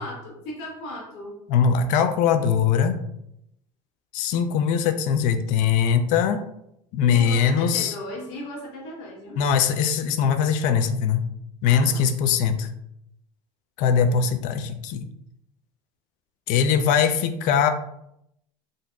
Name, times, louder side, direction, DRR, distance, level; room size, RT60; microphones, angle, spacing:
voice 1, 0.0-1.3 7.0-9.4 11.7-12.0, left 1 dB, 80° left, -2 dB, 1.3 m, -36 dB
voice 2, 1.5-3.0 4.1-6.5 6.9-7.9 9.4-11.2 11.6-12.7 13.8-15.1 16.5-17.7, left 7 dB, 60° left, 9 dB, 0.4 m, -21 dB
3.8 x 2.6 x 2.2 m, 0.79 s
supercardioid pair, 115°, 15 cm